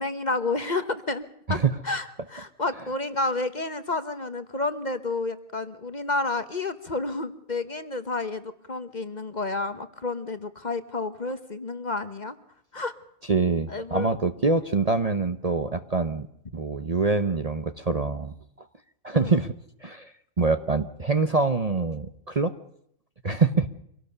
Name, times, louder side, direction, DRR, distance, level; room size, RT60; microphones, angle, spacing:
voice 1, 0.0-1.6 1.8-12.4 12.7-12.9 13.7-14.1 19.1-19.3, left 3 dB, 35° left, 11 dB, 1.1 m, -30 dB
voice 2, 13.3-16.3 16.5-18.7 19.0-19.5 19.8-22.5 23.2-23.7, right 4 dB, 35° right, 10 dB, 0.9 m, -25 dB
25.5 x 17.5 x 6.8 m, 0.72 s
omnidirectional pair, 1.4 m